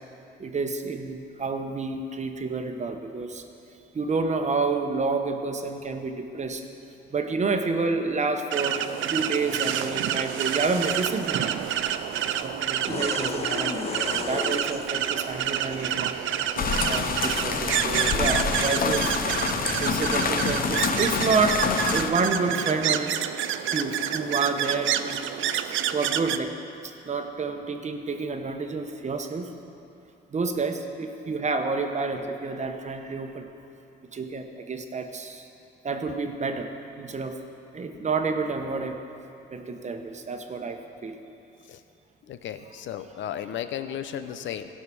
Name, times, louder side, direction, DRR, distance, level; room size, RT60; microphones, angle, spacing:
voice 1, 0.4-3.4 3.9-6.6 7.1-8.8 9.1-11.5 12.4-16.1 16.8-19.2 19.8-23.2 23.7-25.2 25.6-26.5 27.0-29.5 30.3-33.5 34.1-35.5 35.8-36.7 37.0-37.4 37.7-39.0 39.5-41.2 42.6-43.1, right 4 dB, 35° right, 6 dB, 1.0 m, -29 dB
sound 1, 8.5-26.4, right 10 dB, 75° right, 0.5 m, -28 dB
sound 2, 10.6-16.8, left 6 dB, 30° left, 0.4 m, -38 dB
sound 3, 16.6-22.1, left 5 dB, 45° left, 0.8 m, -26 dB
voice 2, 42.3-44.7, left 10 dB, 75° left, 10 dB, 0.7 m, -34 dB
16.5 x 5.6 x 6.1 m, 2.8 s
cardioid pair, 90°, 20 cm